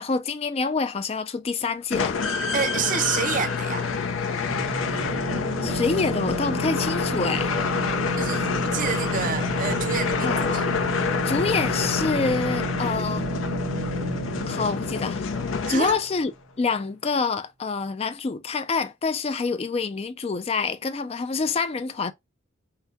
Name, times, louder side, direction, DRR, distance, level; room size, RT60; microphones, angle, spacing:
voice 1, 0.0-2.2 5.6-7.5 8.3-8.5 10.2-10.6 11.2-13.3 14.5-15.2 15.7-16.3 16.6-22.1, left 4 dB, 30° left, 0.3 m, -26 dB
sound 1, 1.9-16.2, left 5 dB, 85° left, 0.7 m, -28 dB
voice 2, 2.5-3.9 8.2-10.6 15.7-16.0, right 7 dB, 40° right, 0.4 m, -28 dB
sound 2, 4.5-16.0, right 1 dB, 60° right, 0.8 m, -31 dB
5.6 x 2.2 x 2.8 m
head